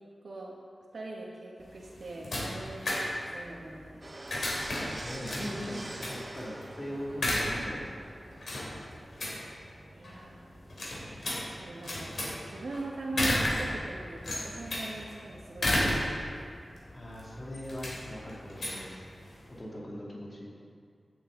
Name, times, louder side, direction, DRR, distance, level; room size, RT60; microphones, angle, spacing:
voice 1, 0.2-0.6 0.9-4.0 9.9-10.4 11.5-12.2 12.5-16.2, right 2 dB, 85° right, -4 dB, 1.4 m, -41 dB
sound 1, 1.6-19.6, left 1 dB, 75° left, 3.2 m, -34 dB
sound 2, 4.0-13.7 14.0-14.1 14.3-14.4 16.9-17.0 17.2-17.3 17.5-19.3, right 1 dB, 35° right, 1.1 m, -47 dB
voice 2, 5.0-8.1 16.9-19.0 19.5-20.5, equal, 30° left, -4 dB, 2.6 m, -40 dB
16.0 x 9.2 x 3.9 m, 2.3 s
wide cardioid pair, 105°, 0 cm